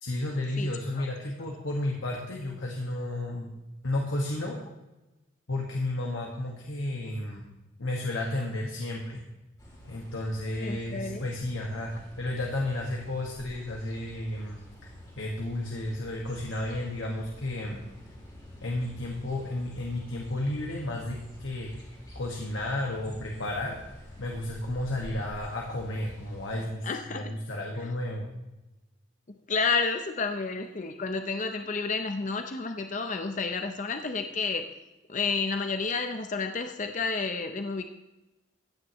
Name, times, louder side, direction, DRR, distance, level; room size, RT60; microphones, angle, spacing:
voice 1, 0.0-3.5 3.8-4.6 5.5-7.4 7.8-9.2 9.9-14.6 15.2-17.8 18.6-21.7 22.2-23.7 24.2-28.3, left 1 dB, 85° left, -1 dB, 1.6 m, -32 dB
voice 2, 0.6-1.0 10.6-11.3 26.8-27.3 29.5-34.7 35.1-37.8, left 4 dB, 40° left, 7 dB, 0.6 m, -30 dB
sound 1, 9.6-26.6, equal, 20° left, 2.8 m, -48 dB
15.5 x 9.5 x 3.1 m, 1.0 s
head